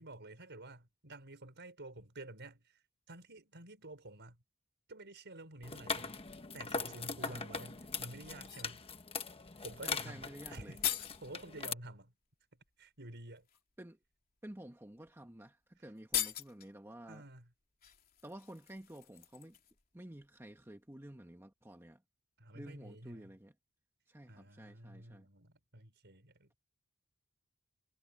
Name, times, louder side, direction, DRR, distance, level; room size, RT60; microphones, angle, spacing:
voice 1, 0.0-4.4 4.9-6.2 6.5-8.8 9.6-12.1 12.8-13.5 15.8-15.9 17.1-17.5 22.4-23.4 24.3-26.5, right 2 dB, 55° right, 5.5 m, -51 dB
sound 1, 5.6-11.7, left 5 dB, 25° left, 1.3 m, -41 dB
sound 2, 8.4-8.8 10.3-10.4 10.6-11.2 12.6-12.7 13.4-13.6 14.5-14.6 14.9-15.1 15.3-15.4 16.0-16.7 17.8-19.9 20.1-20.3, left 11 dB, 45° left, 3.2 m, -40 dB
voice 2, 9.8-10.8 13.8-14.0 14.4-15.6 15.8-17.2 18.2-19.6 19.9-22.0 22.5-23.5 24.1-25.2, right 1 dB, 10° right, 1.3 m, -51 dB
head